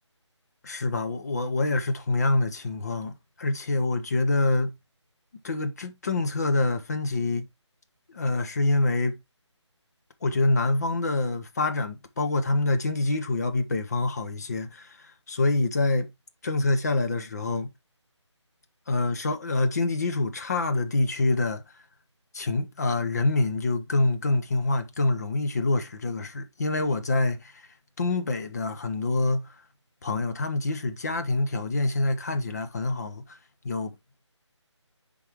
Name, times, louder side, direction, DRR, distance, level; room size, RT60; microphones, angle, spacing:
voice 1, 0.6-4.7 5.4-7.5 8.1-9.2 10.2-16.1 16.4-17.7 18.9-21.6 22.3-27.7 28.0-29.5 30.0-33.4 33.6-33.9, left 2 dB, 35° left, 0.9 m, -26 dB
9.7 x 3.9 x 3.0 m
figure-of-eight pair, 160°, 16 cm